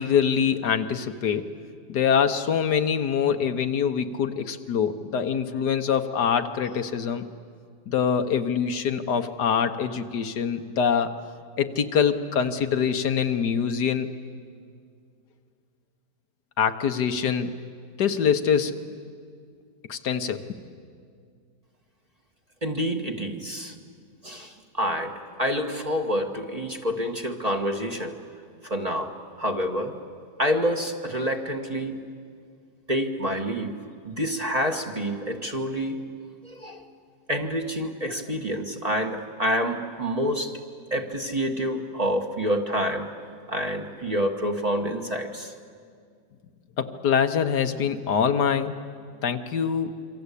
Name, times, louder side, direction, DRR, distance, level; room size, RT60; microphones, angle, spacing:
voice 1, 0.0-1.5 1.9-7.2 7.9-11.1 11.6-14.1 16.6-17.5 18.0-18.8 19.9-20.4 46.8-48.8 49.2-50.0, left 7 dB, 70° left, 8 dB, 1.6 m, -24 dB
voice 2, 22.6-23.7 24.2-28.2 28.6-30.0 30.4-31.9 32.9-33.8 34.0-36.0 36.4-36.9 37.3-40.6 40.9-43.1 43.5-45.5, equal, 25° right, 3 dB, 1.5 m, -28 dB
27.5 x 24.5 x 8.4 m, 2.2 s
omnidirectional pair, 1.8 m